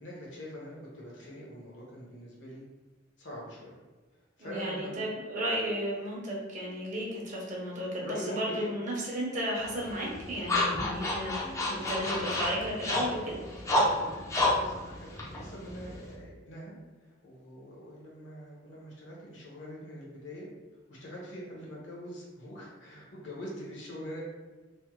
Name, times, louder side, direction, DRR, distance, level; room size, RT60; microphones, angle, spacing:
voice 1, 0.0-2.6 3.2-3.8 4.4-5.0 7.7-8.8 11.6-12.4 13.8-16.7 17.0-20.5 20.9-24.2, equal, 75° left, -5 dB, 1.1 m, -43 dB
voice 2, 4.4-13.4, equal, 40° right, -4 dB, 0.8 m, -34 dB
sound 1, 9.6-16.1, left 1 dB, 15° left, 0.5 m, -30 dB
3.3 x 2.1 x 3.0 m, 1.3 s
head